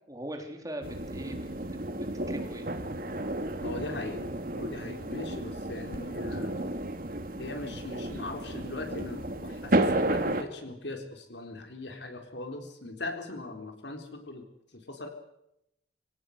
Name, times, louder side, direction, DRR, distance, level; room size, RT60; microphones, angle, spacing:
voice 1, 0.1-2.7, right 1 dB, 20° right, 4 dB, 3.4 m, -41 dB
sound 1, 0.8-10.4, right 1 dB, 50° right, 2.0 m, -32 dB
voice 2, 3.6-6.5 7.4-14.4 14.7-15.1, left 2 dB, 70° left, 5 dB, 4.1 m, -39 dB
25.0 x 17.5 x 8.1 m, 0.80 s
head